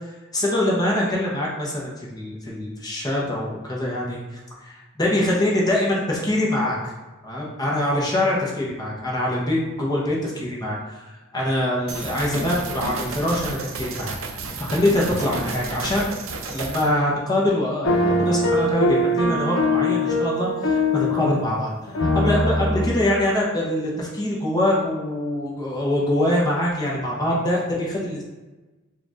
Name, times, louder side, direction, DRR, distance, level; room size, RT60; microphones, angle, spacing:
voice 1, 0.3-6.9 7.2-11.0 11.3-16.1 16.5-21.7 22.0-28.2, left 1 dB, 20° left, -4 dB, 0.8 m, -24 dB
sound 1, 11.9-16.9, right 3 dB, 80° right, 0.5 m, -32 dB
sound 2, 17.8-21.4 21.9-23.0, left 1 dB, 90° left, 0.7 m, -22 dB
4.4 x 2.4 x 3.7 m, 1.2 s
head